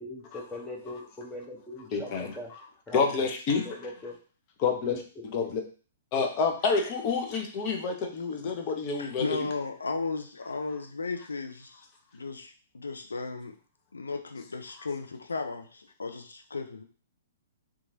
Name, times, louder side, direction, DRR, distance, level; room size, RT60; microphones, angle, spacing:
voice 1, 0.5-2.5 2.9-3.0 3.8-4.1 5.4-5.5, left 1 dB, 5° left, -2 dB, 0.7 m, -40 dB
voice 2, 1.9-2.7 2.9-3.7 4.6-5.6 6.1-9.2, left 5 dB, 40° left, 3 dB, 0.7 m, -29 dB
voice 3, 9.0-11.8 12.1-13.6 13.9-16.8, left 4 dB, 80° left, 5 dB, 0.4 m, -35 dB
2.9 x 2.4 x 2.7 m, 0.39 s
figure-of-eight pair, 115°, 0 cm